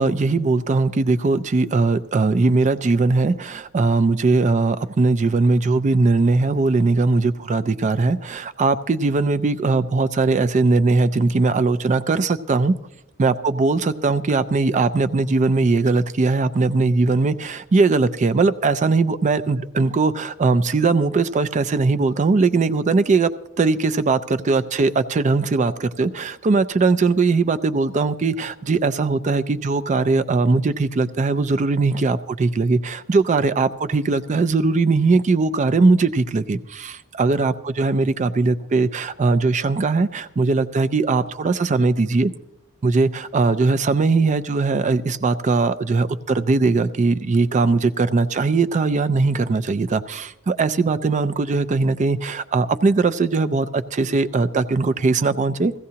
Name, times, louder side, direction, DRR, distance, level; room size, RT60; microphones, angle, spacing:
voice 1, 0.0-12.7 13.2-23.3 23.6-42.3 42.8-55.7, right 3 dB, 35° right, 0.4 m, -20 dB
16.0 x 15.5 x 2.8 m
head